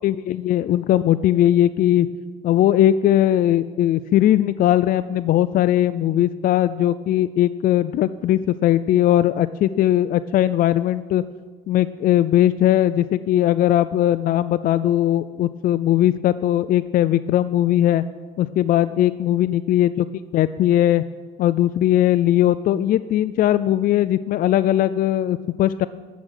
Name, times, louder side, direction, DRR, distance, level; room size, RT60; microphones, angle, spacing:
voice 1, 0.0-2.1 2.4-11.2 11.7-18.0 18.4-20.0 20.3-21.0 21.4-25.9, left 12 dB, 55° left, 13 dB, 0.4 m, -19 dB
14.0 x 6.2 x 8.9 m, 1.5 s
cardioid pair, 110°, 17 cm